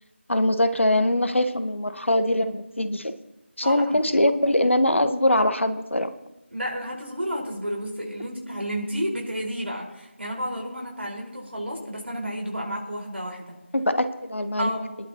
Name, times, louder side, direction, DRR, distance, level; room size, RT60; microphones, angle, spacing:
voice 1, 0.3-3.2 3.6-6.1 13.7-14.7, left 1 dB, 70° left, 10 dB, 1.2 m, -22 dB
voice 2, 3.6-4.0 6.5-13.6 14.6-15.0, equal, 65° right, -1 dB, 4.7 m, -31 dB
24.0 x 11.0 x 3.0 m, 0.91 s
figure-of-eight pair, 170°, 7 cm